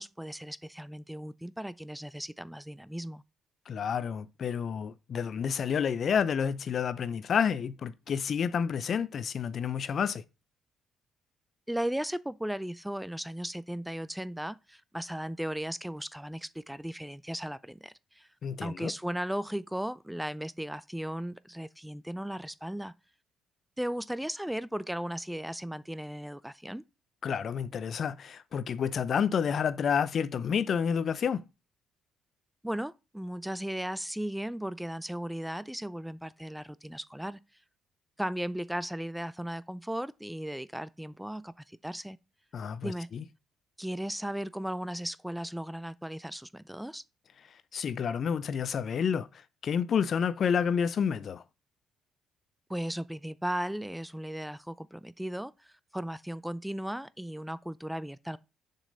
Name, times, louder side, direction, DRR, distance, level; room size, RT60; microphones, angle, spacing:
voice 1, 0.0-3.2 11.7-18.3 18.6-22.9 23.8-26.8 32.6-37.4 38.2-42.2 42.8-43.1 43.8-47.0 52.7-58.4, right 1 dB, 5° right, 0.5 m, -36 dB
voice 2, 3.7-10.2 18.4-18.9 27.2-31.4 42.5-43.2 47.7-51.4, left 7 dB, 55° left, 0.7 m, -29 dB
7.1 x 5.6 x 4.0 m
hypercardioid pair, 50°, 0 cm